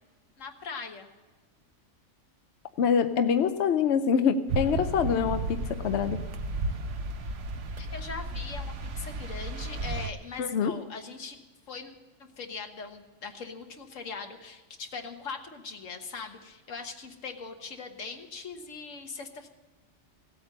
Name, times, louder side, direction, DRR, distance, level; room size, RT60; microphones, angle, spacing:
voice 1, 0.4-1.1 7.8-11.4 11.7-11.9 12.2-19.5, left 4 dB, 85° left, 5 dB, 1.7 m, -40 dB
voice 2, 2.8-6.2 10.4-10.7, left 7 dB, 65° left, 8 dB, 0.9 m, -25 dB
sound 1, 4.5-10.1, right 2 dB, 75° right, 1.2 m, -33 dB
16.5 x 8.7 x 6.5 m, 1.3 s
omnidirectional pair, 1.3 m